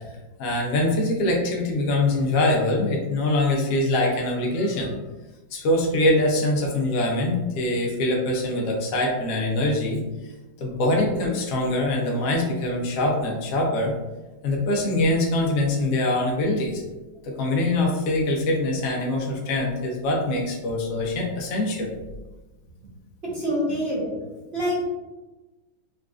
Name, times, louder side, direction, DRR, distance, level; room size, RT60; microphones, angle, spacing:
voice 1, 0.4-4.9 5.5-10.0 10.6-13.9 14.4-16.8 17.2-21.9, left 1 dB, 70° left, -1 dB, 0.8 m, -23 dB
voice 2, 23.2-24.1 24.5-24.8, equal, 45° right, -8 dB, 0.8 m, -25 dB
4.0 x 2.5 x 2.3 m, 1.1 s
omnidirectional pair, 2.2 m